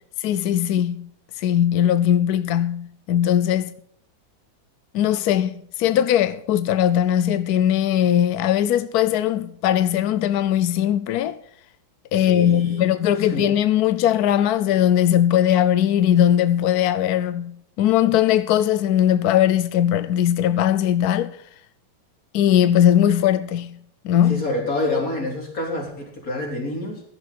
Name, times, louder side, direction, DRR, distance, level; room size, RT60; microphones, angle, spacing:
voice 1, 0.2-1.1 1.4-3.7 4.9-11.4 12.1-21.4 22.3-23.8 24.0-24.4, left 10 dB, 70° left, 0.9 m, -19 dB
voice 2, 12.2-12.9 13.2-13.5 24.3-27.0, left 2 dB, 40° left, 4.0 m, -27 dB
15.5 x 11.5 x 4.1 m
omnidirectional pair, 2.2 m